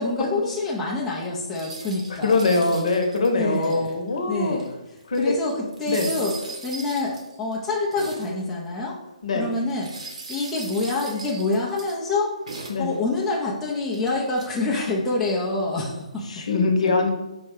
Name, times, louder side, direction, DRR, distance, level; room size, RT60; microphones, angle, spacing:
voice 1, 0.0-2.4 3.3-4.0 4.3-4.7 5.2-5.5 5.8-6.4 6.6-9.0 9.3-9.9 10.3-16.2, left 3 dB, 5° left, -5 dB, 0.5 m, -26 dB
sound 1, 1.5-4.1 4.6-4.7 5.0-8.4 9.7-12.0 12.5-13.3 13.9-14.6, right 3 dB, 65° right, 1.1 m, -39 dB
voice 2, 2.1-4.6 5.1-5.3 5.9-6.1 9.2-9.5 12.7-12.9 16.3-17.1, left 3 dB, 60° left, 3 dB, 0.8 m, -22 dB
4.7 x 2.1 x 4.7 m, 0.99 s
hypercardioid pair, 160°, 4 cm